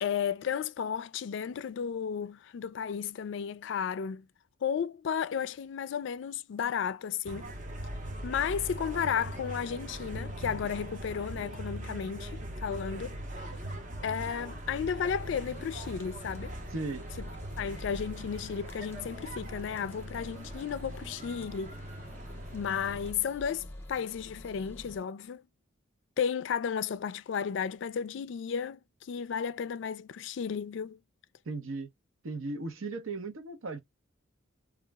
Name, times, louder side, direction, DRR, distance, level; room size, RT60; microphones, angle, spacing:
voice 1, 0.0-4.3 4.6-7.5 8.2-13.2 14.0-16.6 17.6-21.8 22.5-25.4 26.2-31.0, left 7 dB, 60° left, 0.3 m, -33 dB
sound 1, 7.3-23.1, right 1 dB, 40° right, 0.6 m, -41 dB
sound 2, 15.1-25.0, left 1 dB, 10° left, 0.6 m, -48 dB
voice 2, 16.7-17.1 31.5-31.9 32.2-33.8, right 3 dB, 85° right, 0.7 m, -36 dB
2.4 x 2.0 x 3.3 m
head